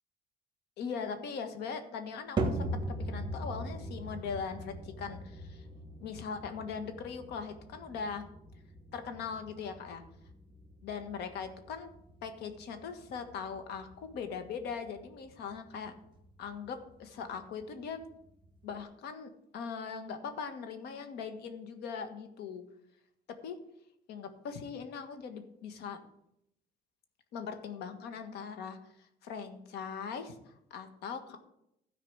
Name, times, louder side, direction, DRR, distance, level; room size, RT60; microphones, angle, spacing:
voice 1, 0.8-5.7 6.0-8.2 8.9-10.0 10.8-11.9 12.2-15.9 16.4-18.0 18.6-22.6 23.3-23.6 24.1-26.0 27.3-31.4, left 6 dB, 75° left, 8 dB, 1.6 m, -40 dB
sound 1, 2.4-18.8, right 1 dB, 25° right, 1.9 m, -41 dB
12.5 x 4.9 x 8.7 m, 0.78 s
cardioid pair, 110°, 17 cm